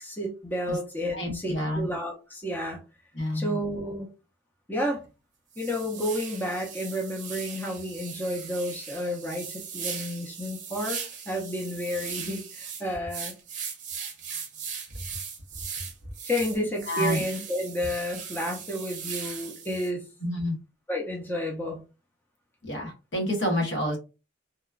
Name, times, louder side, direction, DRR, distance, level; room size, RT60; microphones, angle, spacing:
voice 1, 0.0-2.8 3.3-4.1 4.7-5.0 5.6-11.0 11.3-13.3 16.2-20.0 20.9-21.8, equal, 10° left, -1 dB, 0.6 m, -31 dB
voice 2, 1.1-1.9 3.1-3.6 16.9-17.2 20.2-20.6 22.6-24.0, left 1 dB, 70° left, 1 dB, 1.1 m, -28 dB
sound 1, 4.9-5.1 5.5-19.9, right 6 dB, 40° right, 0.7 m, -38 dB
2.9 x 2.3 x 2.3 m, 0.30 s
head